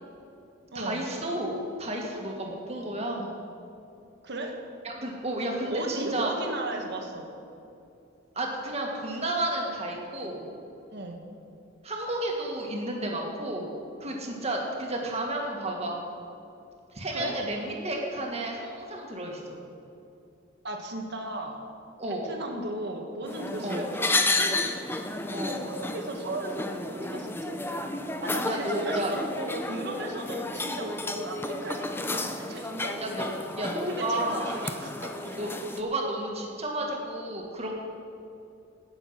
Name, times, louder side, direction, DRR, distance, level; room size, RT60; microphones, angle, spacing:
voice 1, 0.7-3.3 4.8-6.3 8.4-10.5 11.8-13.7 14.0-16.0 16.9-19.6 22.0-22.3 23.6-23.9 25.3-25.7 28.5-29.1 33.0-34.5 35.3-37.7, right 1 dB, 30° right, 0 dB, 2.0 m, -32 dB
voice 2, 4.2-4.6 5.7-7.3 10.9-11.2 17.1-17.4 20.6-21.6 22.1-24.7 25.6-27.6 28.2-33.0 33.8-35.4, right 1 dB, 55° right, 2 dB, 1.6 m, -36 dB
sound 1, 23.3-35.8, left 2 dB, 10° left, 0.6 m, -32 dB
18.0 x 7.1 x 5.8 m, 2.7 s
head